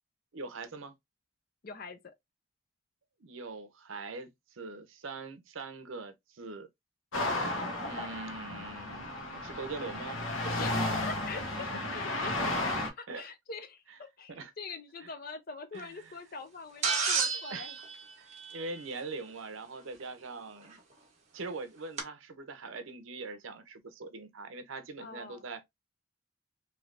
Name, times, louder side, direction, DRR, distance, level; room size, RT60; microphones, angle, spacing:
voice 1, 0.3-0.9 3.2-6.7 7.8-10.2 11.7-11.8 13.1-13.3 13.9-14.0 14.3-14.5 15.0-15.1 15.7-16.2 17.5-17.7 18.2-20.8 21.3-25.6, right 3 dB, 70° right, 0.6 m, -42 dB
voice 2, 1.6-2.0 10.4-11.7 11.9-13.8 14.2-17.7 25.0-25.4, left 4 dB, 45° left, 0.5 m, -43 dB
sound 1, 7.1-12.9, left 1 dB, 70° left, 1.0 m, -33 dB
sound 2, 16.8-19.1 20.7-20.8 22.0-22.1, right 5 dB, 35° right, 1.0 m, -32 dB
3.2 x 2.8 x 2.4 m
head